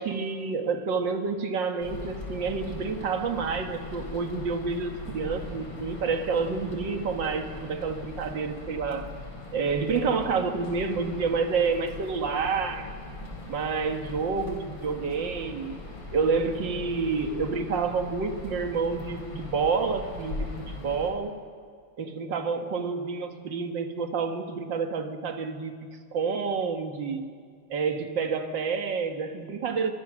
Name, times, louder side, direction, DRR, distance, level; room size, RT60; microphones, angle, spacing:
voice 1, 0.0-9.1 9.5-12.9 13.5-15.7 16.1-21.3 22.0-25.7 26.1-27.3 27.7-29.9, right 5 dB, 60° right, 5 dB, 2.3 m, -29 dB
sound 1, 1.8-21.1, left 2 dB, 60° left, 4.4 m, -40 dB
24.0 x 22.5 x 6.3 m, 2.1 s
omnidirectional pair, 2.3 m